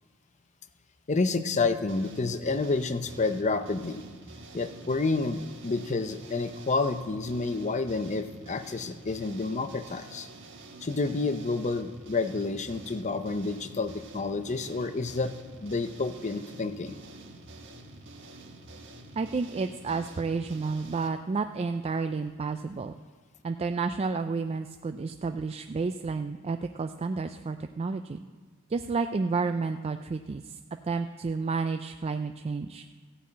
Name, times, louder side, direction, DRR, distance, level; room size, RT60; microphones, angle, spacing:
voice 1, 1.1-4.0 4.5-10.3 10.8-15.3 15.6-17.0, left 3 dB, 35° left, 10 dB, 0.6 m, -29 dB
sound 1, 1.9-21.1, right 2 dB, 65° right, 1.4 m, -48 dB
voice 2, 19.2-22.9 23.4-28.2 28.7-30.6 30.8-32.8, right 4 dB, 30° right, 8 dB, 0.3 m, -31 dB
14.5 x 5.6 x 8.5 m, 1.5 s
head